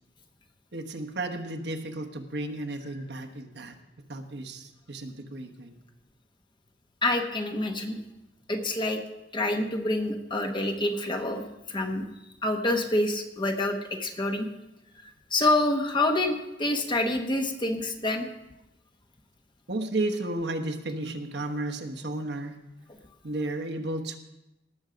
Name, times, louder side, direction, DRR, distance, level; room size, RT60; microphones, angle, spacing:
voice 1, 0.7-3.7 4.1-5.8 19.7-22.5 23.2-24.2, right 2 dB, 60° right, 5 dB, 1.2 m, -33 dB
voice 2, 7.0-8.0 8.5-9.0 9.3-11.4 11.7-12.0 12.4-14.5 15.3-18.3, left 2 dB, 25° left, 4 dB, 1.1 m, -27 dB
18.5 x 7.1 x 5.1 m, 0.94 s
head